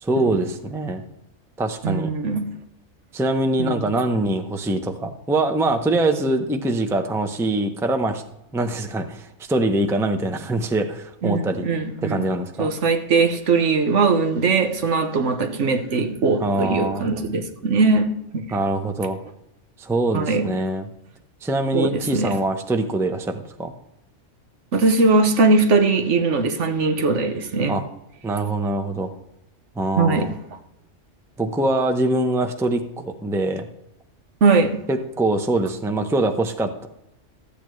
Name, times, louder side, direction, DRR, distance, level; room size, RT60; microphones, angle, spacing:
voice 1, 0.0-1.0 1.6-2.1 3.1-8.2 8.5-11.7 12.0-12.7 16.4-17.1 18.5-19.2 19.8-20.9 21.4-23.7 27.7-27.8 28.2-29.1 29.8-30.3 31.4-33.7 34.9-36.9, right 2 dB, 5° right, 6 dB, 0.5 m, -23 dB
voice 2, 1.8-2.5 3.6-3.9 11.2-12.3 12.6-18.4 20.1-20.5 21.7-22.4 24.7-27.8 30.0-30.3 34.4-34.8, right 3 dB, 70° right, 7 dB, 1.2 m, -20 dB
13.5 x 8.5 x 3.1 m, 0.85 s
omnidirectional pair, 1.3 m